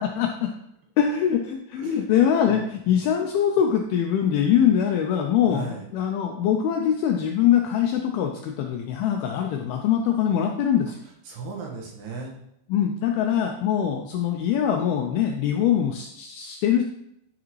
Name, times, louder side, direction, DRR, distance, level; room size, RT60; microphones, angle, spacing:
voice 1, 0.0-0.5 1.0-11.0 12.7-16.8, left 9 dB, 85° left, 3 dB, 2.2 m, -23 dB
voice 2, 1.7-2.0 2.4-3.0 5.5-5.9 11.3-12.3, right 4 dB, 70° right, -1 dB, 3.2 m, -37 dB
9.9 x 4.9 x 3.1 m, 0.79 s
omnidirectional pair, 4.9 m